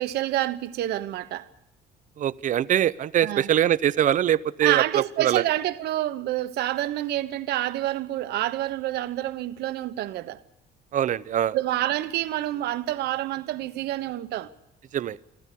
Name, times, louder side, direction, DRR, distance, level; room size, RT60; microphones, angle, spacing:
voice 1, 0.0-1.5 3.2-3.5 4.6-10.4 11.5-14.5, right 14 dB, 75° right, 1.1 m, -28 dB
voice 2, 2.2-5.4 10.9-11.6 14.9-15.2, right 10 dB, 50° right, 0.7 m, -23 dB
28.5 x 12.5 x 8.4 m
cardioid pair, 110°, 17 cm